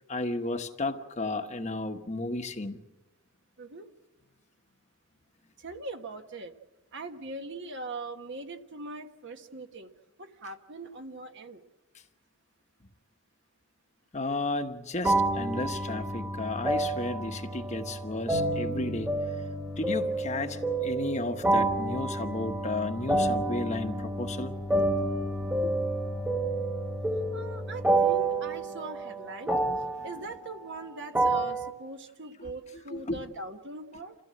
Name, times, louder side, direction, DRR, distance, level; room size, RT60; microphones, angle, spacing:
voice 1, 0.1-2.8 14.1-19.1 19.8-24.5 25.6-25.7 32.9-33.2, left 2 dB, 30° left, 6 dB, 1.1 m, -33 dB
voice 2, 5.6-6.5 6.9-9.9 10.2-11.6 27.3-29.5 30.0-34.2, right 3 dB, 50° right, 6 dB, 1.5 m, -41 dB
sound 1, 15.0-31.7, right 2 dB, 10° right, 1.7 m, -29 dB
28.5 x 15.5 x 7.8 m, 1.1 s
head